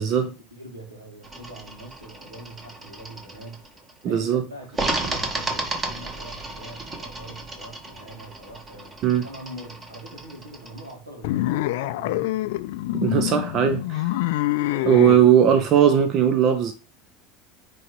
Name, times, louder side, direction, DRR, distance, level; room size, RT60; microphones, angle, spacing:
voice 1, 0.0-3.7 4.0-8.9 9.2-12.4 13.1-13.4 14.0-14.1 14.6-15.1, right 1 dB, 85° right, 2.0 m, -43 dB
sound 1, 1.2-3.9 4.7-10.9, right 2 dB, 25° right, 1.7 m, -33 dB
voice 2, 4.0-4.4 9.0-9.2 12.9-14.2 14.8-16.7, right 9 dB, 45° right, 0.6 m, -19 dB
sound 2, 11.2-15.2, left 16 dB, 65° left, 0.4 m, -26 dB
9.1 x 3.4 x 3.2 m
figure-of-eight pair, 75°, 0 cm